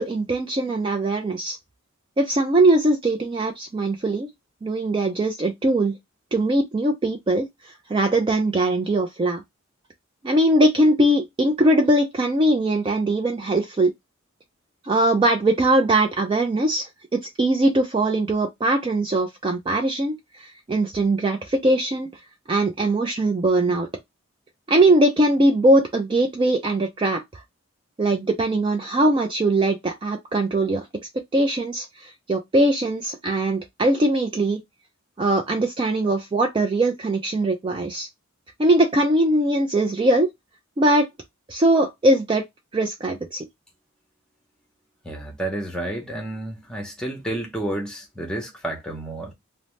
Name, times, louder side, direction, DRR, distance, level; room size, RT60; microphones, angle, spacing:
voice 1, 0.0-1.6 2.2-4.3 4.6-6.0 6.3-9.4 10.2-13.9 14.8-22.1 22.5-23.9 24.7-27.4 28.0-30.9 31.3-34.6 35.2-38.1 38.6-40.3 40.8-41.1 41.5-42.4 42.7-43.5, right 1 dB, 25° right, 0.3 m, -21 dB
voice 2, 45.0-49.3, right 1 dB, 5° left, 0.7 m, -30 dB
2.7 x 2.0 x 3.0 m
head